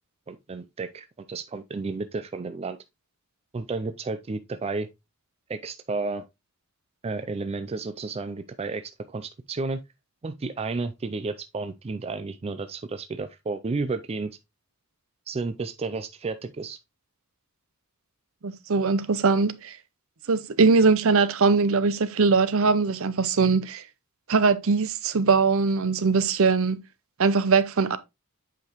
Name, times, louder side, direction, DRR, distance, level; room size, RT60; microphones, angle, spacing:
voice 1, 0.3-2.8 3.5-4.9 5.5-6.2 7.0-9.8 10.2-14.3 15.3-16.8, right 3 dB, 25° right, 0.4 m, -32 dB
voice 2, 18.4-19.7 20.3-23.8 24.3-26.8 27.2-28.0, right 4 dB, 65° right, 0.6 m, -21 dB
8.0 x 5.1 x 2.9 m
head